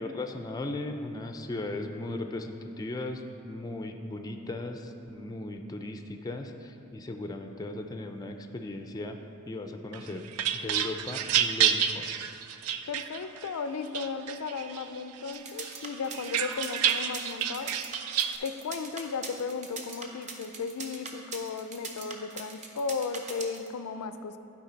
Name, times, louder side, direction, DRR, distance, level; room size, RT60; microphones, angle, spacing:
voice 1, 0.0-9.2 9.5-10.3 10.5-12.1, left 2 dB, 15° left, 5 dB, 0.3 m, -37 dB
sound 1, 9.9-13.5 13.9-14.8 15.3-18.4, right 9 dB, 75° right, 0.4 m, -29 dB
voice 2, 12.9-17.8 18.4-24.4, left 5 dB, 90° left, 10 dB, 0.4 m, -35 dB
sound 2, 15.3-23.7, right 4 dB, 35° right, 0.7 m, -40 dB
11.5 x 4.9 x 3.9 m, 2.8 s
head